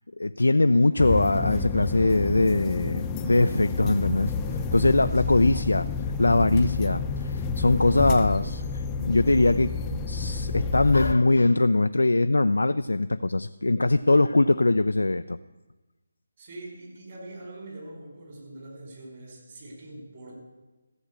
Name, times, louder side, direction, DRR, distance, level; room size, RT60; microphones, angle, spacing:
voice 1, 0.2-4.3 4.7-5.9 6.2-15.4, left 2 dB, 75° left, 10 dB, 0.4 m, -22 dB
sound 1, 1.0-11.2, left 4 dB, 15° left, 0.6 m, -29 dB
voice 2, 16.4-20.3, right 2 dB, 40° right, -1 dB, 4.9 m, -43 dB
14.5 x 7.2 x 8.2 m, 1.2 s
figure-of-eight pair, 155°, 0 cm